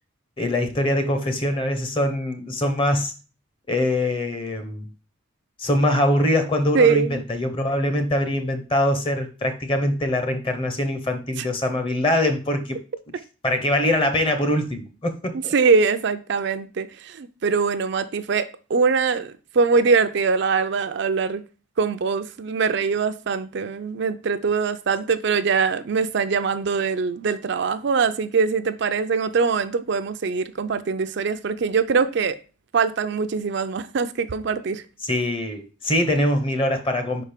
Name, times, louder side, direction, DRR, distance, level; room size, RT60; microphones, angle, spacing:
voice 1, 0.4-3.1 3.7-4.9 5.6-12.8 13.4-15.5 35.0-37.2, left 1 dB, 25° left, 0.8 m, -23 dB
voice 2, 6.7-7.2 15.5-21.4 21.8-32.4 32.7-34.8, right 5 dB, 60° right, 0.4 m, -22 dB
5.2 x 4.4 x 4.9 m
head